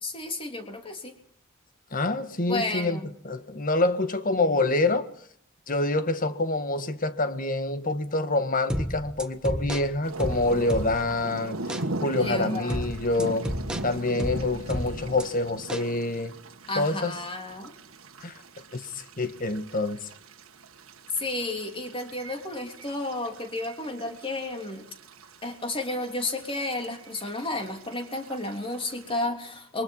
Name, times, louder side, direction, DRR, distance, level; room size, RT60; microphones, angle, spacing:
voice 1, 0.0-1.2 2.5-3.1 12.2-13.0 16.7-17.7 21.1-24.9 25.4-29.8, left 2 dB, 25° left, 3.4 m, -32 dB
voice 2, 1.9-3.0 3.2-5.1 5.7-11.6 12.0-13.5 13.8-16.4 16.7-17.1 18.2-18.3 18.7-20.1, left 2 dB, 40° left, 1.6 m, -26 dB
sound 1, 8.7-11.2 11.7-11.9 12.7-15.2 15.7-15.9, equal, 5° right, 1.4 m, -32 dB
sound 2, 10.0-29.2, right 2 dB, 90° right, 1.6 m, -40 dB
29.0 x 23.5 x 5.5 m
head